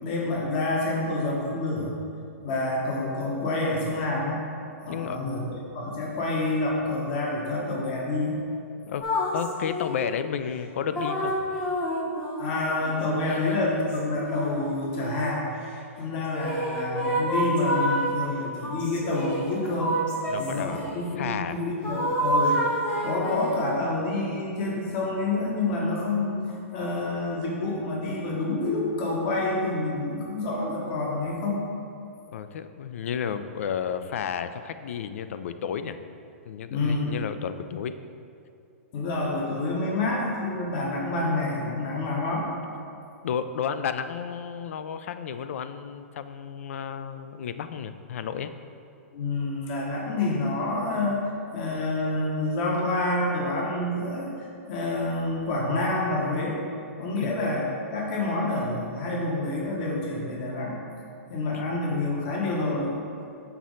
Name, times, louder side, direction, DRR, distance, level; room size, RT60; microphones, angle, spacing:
voice 1, 0.0-1.9 2.4-4.4 4.8-5.5 5.7-8.4 12.4-15.5 16.0-20.0 20.4-31.7 36.7-37.2 38.9-42.5 49.1-51.2 51.5-56.6 57.0-60.8 61.3-62.9, left 2 dB, 35° left, -3 dB, 1.1 m, -28 dB
voice 2, 4.9-5.2 8.9-9.1 9.3-11.3 13.3-13.4 20.3-20.8 21.2-21.6 32.3-36.0 36.5-38.0 43.2-48.5 57.2-57.3 61.5-61.6, left 7 dB, 65° left, 11 dB, 0.4 m, -32 dB
sound 1, 9.0-10.2 11.0-15.3 16.3-18.1 18.6-21.0 21.8-23.7, equal, 15° left, 0.9 m, -28 dB
6.0 x 4.1 x 6.3 m, 2.6 s
hypercardioid pair, 165°, 8 cm